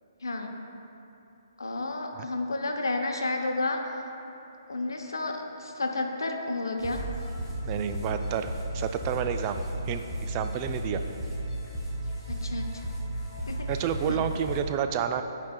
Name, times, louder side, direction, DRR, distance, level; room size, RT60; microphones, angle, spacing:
voice 1, 0.2-0.6 1.6-3.8 4.7-7.0 12.3-12.8 13.5-13.6 14.1-14.2, left 2 dB, 85° left, 3 dB, 0.7 m, -31 dB
sound 1, 6.8-14.6, right 1 dB, 5° right, 1.3 m, -34 dB
voice 2, 7.6-9.6 9.9-11.0 13.7-15.2, right 8 dB, 30° right, 7 dB, 0.3 m, -30 dB
11.5 x 4.6 x 2.2 m, 3.0 s
hypercardioid pair, 145°, 2 cm